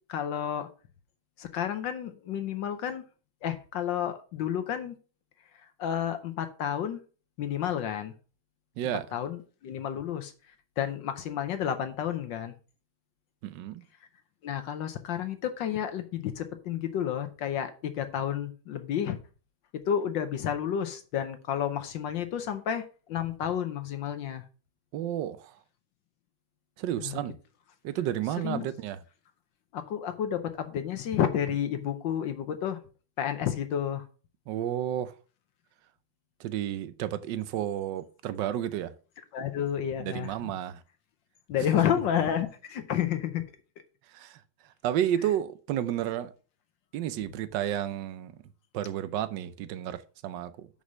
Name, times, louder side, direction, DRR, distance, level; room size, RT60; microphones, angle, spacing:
voice 1, 0.1-0.7 1.4-3.0 3.4-5.0 5.8-7.0 7.4-8.1 9.1-12.5 14.4-19.2 19.7-24.5 27.0-27.2 28.4-28.7 29.7-32.8 33.2-34.1 39.3-40.5 41.5-43.4, left 9 dB, 70° left, 1.4 m, -31 dB
voice 2, 8.8-9.1 13.4-13.9 24.9-25.6 26.8-27.4 27.8-29.0 34.5-35.1 36.4-38.9 40.0-40.8 44.1-44.4 44.8-46.3 46.9-48.3 48.7-50.7, right 11 dB, 70° right, 1.3 m, -31 dB
6.3 x 5.5 x 6.2 m
omnidirectional pair, 2.3 m